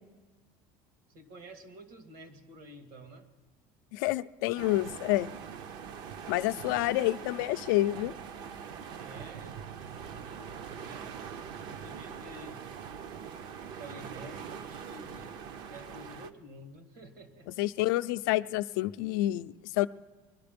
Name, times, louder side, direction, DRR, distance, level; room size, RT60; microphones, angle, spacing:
voice 1, 1.1-3.3 9.0-9.6 9.9-11.3 11.6-12.7 13.8-15.4 15.7-17.5, right 1 dB, 70° right, 7 dB, 1.9 m, -50 dB
voice 2, 3.9-5.3 6.3-8.1 17.6-19.9, left 17 dB, 85° left, 12 dB, 0.5 m, -28 dB
sound 1, 4.6-16.3, right 7 dB, 45° right, 0.6 m, -43 dB
21.5 x 12.0 x 5.2 m, 1.4 s
cardioid pair, 175°, 10 cm